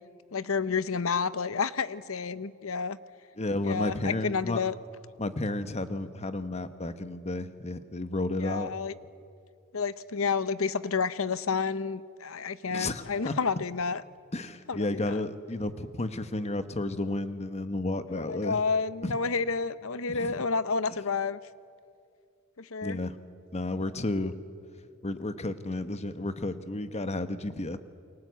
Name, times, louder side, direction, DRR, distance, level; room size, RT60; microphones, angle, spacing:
voice 1, 0.3-3.0 3.6-4.8 8.4-8.9 9.7-14.0 14.7-15.2 18.1-21.4 22.6-23.0, left 5 dB, 65° left, 16 dB, 0.8 m, -30 dB
voice 2, 3.4-4.6 5.2-8.7 12.7-13.3 14.3-18.6 19.0-19.1 20.1-20.3 22.8-23.2 23.5-24.3 25.0-27.8, left 2 dB, 30° left, 11 dB, 1.2 m, -32 dB
29.0 x 23.0 x 8.3 m, 2.4 s
head